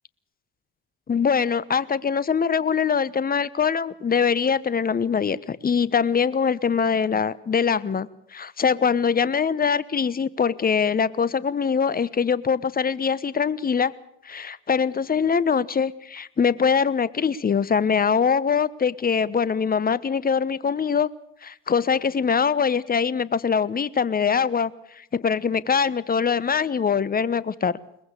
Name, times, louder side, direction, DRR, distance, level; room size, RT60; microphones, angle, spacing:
voice 1, 1.1-13.9 14.2-21.1 21.4-27.8, left 6 dB, 25° left, 18 dB, 1.0 m, -23 dB
22.0 x 20.5 x 6.8 m, 0.76 s
hypercardioid pair, 65°, 35 cm